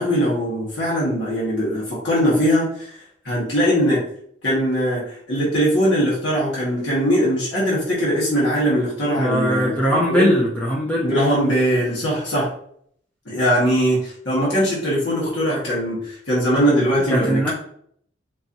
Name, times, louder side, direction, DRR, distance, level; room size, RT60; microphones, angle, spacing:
voice 1, 0.0-4.0 4.4-10.3 11.0-12.5 13.2-17.5, equal, 75° left, -6 dB, 1.6 m, -21 dB
voice 2, 9.2-11.1 17.1-17.5, equal, 10° left, -4 dB, 0.6 m, -20 dB
4.5 x 2.9 x 2.6 m, 0.65 s
head